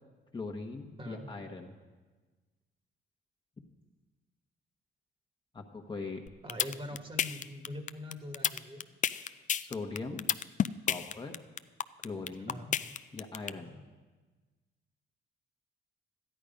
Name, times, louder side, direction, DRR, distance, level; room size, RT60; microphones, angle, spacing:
voice 1, 0.3-1.8 5.5-6.2 9.6-10.3 10.9-11.4 12.0-12.6 13.1-13.7, left 3 dB, 25° left, 2 dB, 1.1 m, -40 dB
sound 1, 6.3-13.5, left 9 dB, 40° left, 0.4 m, -30 dB
voice 2, 6.4-8.9 12.5-12.8 13.6-13.8, left 1 dB, 25° right, 5 dB, 1.5 m, -43 dB
13.0 x 10.0 x 5.2 m, 1.3 s
cardioid pair, 90°, 20 cm